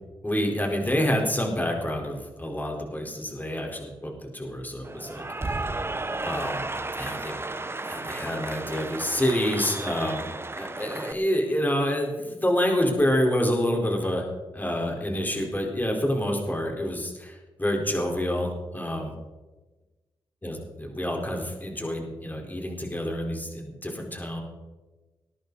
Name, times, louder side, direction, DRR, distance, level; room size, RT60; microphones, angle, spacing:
voice 1, 0.2-5.7 6.2-6.7 7.0-7.4 7.8-10.2 10.6-14.2 14.5-19.1 20.4-24.4, equal, 20° left, 1 dB, 4.6 m, -28 dB
Cheering / Applause, 4.8-11.1, right 2 dB, 25° right, 1.0 m, -33 dB
20.0 x 10.5 x 4.2 m, 1.2 s
cardioid pair, 50°, 9 cm